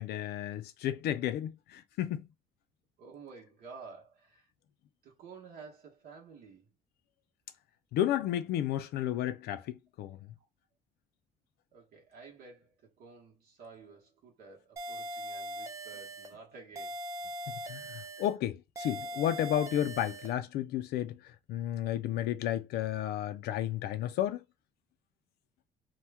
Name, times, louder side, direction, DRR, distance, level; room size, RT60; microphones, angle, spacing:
voice 1, 0.0-2.3 7.9-10.2 17.7-24.4, left 11 dB, 70° left, 0.4 m, -32 dB
voice 2, 3.0-4.5 5.0-6.7 10.2-10.3 11.7-17.0 18.1-18.3, right 5 dB, 65° right, 1.0 m, -52 dB
sound 1, 14.8-16.3 16.8-18.3 18.8-20.3, right 1 dB, 20° right, 0.6 m, -41 dB
2.9 x 2.2 x 3.3 m
cardioid pair, 110°, 17 cm